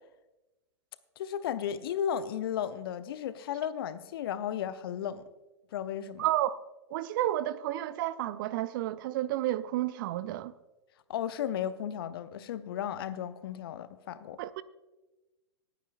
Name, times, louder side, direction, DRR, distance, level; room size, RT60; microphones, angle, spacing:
voice 1, 1.2-5.2 5.7-6.3 11.1-14.4, left 9 dB, 55° left, 0.8 m, -34 dB
voice 2, 6.2-6.6 6.9-10.5 14.4-14.6, right 14 dB, 50° right, 0.5 m, -31 dB
26.5 x 9.3 x 2.5 m
figure-of-eight pair, 100°, 14 cm